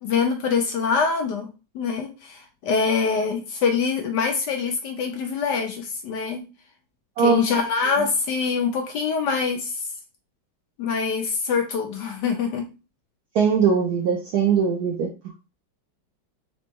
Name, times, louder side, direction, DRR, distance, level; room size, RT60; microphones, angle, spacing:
voice 1, 0.0-1.5 1.7-6.5 7.2-9.9 10.8-12.7, left 5 dB, 65° left, 1.1 m, -24 dB
voice 2, 13.3-15.1, right 6 dB, 70° right, 0.9 m, -20 dB
4.1 x 2.1 x 4.5 m
omnidirectional pair, 2.3 m